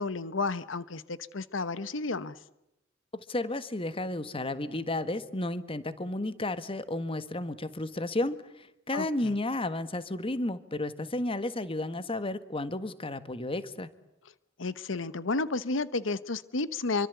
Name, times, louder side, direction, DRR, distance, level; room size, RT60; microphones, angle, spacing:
voice 1, 0.0-2.4 8.9-9.3 14.6-17.1, left 3 dB, 80° left, 15 dB, 1.1 m, -32 dB
voice 2, 3.1-13.9, left 2 dB, 30° left, 13 dB, 1.6 m, -32 dB
27.0 x 24.5 x 8.2 m, 0.87 s
head